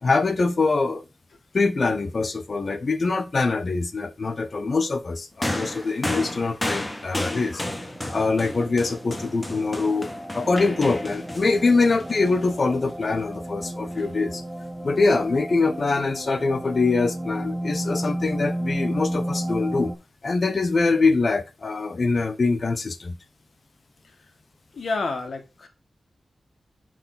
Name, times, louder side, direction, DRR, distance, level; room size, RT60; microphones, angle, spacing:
voice 1, 0.0-1.0 1.5-7.7 8.1-10.1 10.3-14.4 14.8-19.9 20.2-23.2, left 3 dB, 50° left, 0.9 m, -23 dB
sound 1, 5.4-12.9 13.9-14.0, left 1 dB, 20° left, 1.5 m, -32 dB
sound 2, 7.6-19.9, right 1 dB, 30° right, 2.6 m, -33 dB
voice 2, 24.7-25.7, left 3 dB, 75° left, 2.0 m, -30 dB
10.0 x 4.6 x 4.0 m
wide cardioid pair, 90°, 0 cm